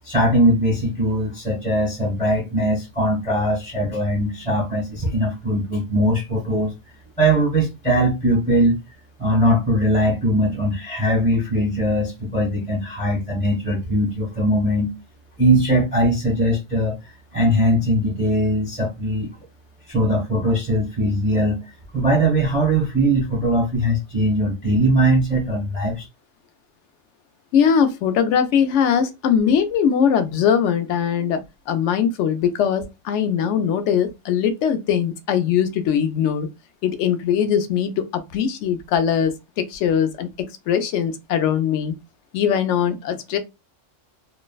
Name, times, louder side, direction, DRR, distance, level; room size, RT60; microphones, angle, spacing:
voice 1, 0.0-6.7 7.2-8.8 9.2-14.9 15.4-19.3 19.9-21.6 21.9-26.1, right 1 dB, 5° left, 0.7 m, -20 dB
voice 2, 27.5-36.5 36.8-41.9 42.3-43.4, left 8 dB, 70° left, 0.9 m, -21 dB
3.2 x 2.0 x 2.2 m
omnidirectional pair, 1.3 m